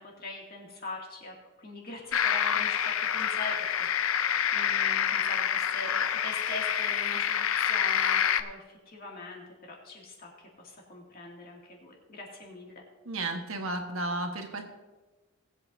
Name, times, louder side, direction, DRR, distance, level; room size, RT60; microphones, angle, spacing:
voice 1, 0.0-12.8, left 2 dB, 45° left, -2 dB, 2.4 m, -43 dB
sound 1, 2.1-8.4, left 9 dB, 75° left, 0.6 m, -27 dB
voice 2, 13.0-14.6, right 2 dB, 70° right, 4 dB, 1.4 m, -33 dB
19.5 x 8.3 x 2.7 m, 1.2 s
head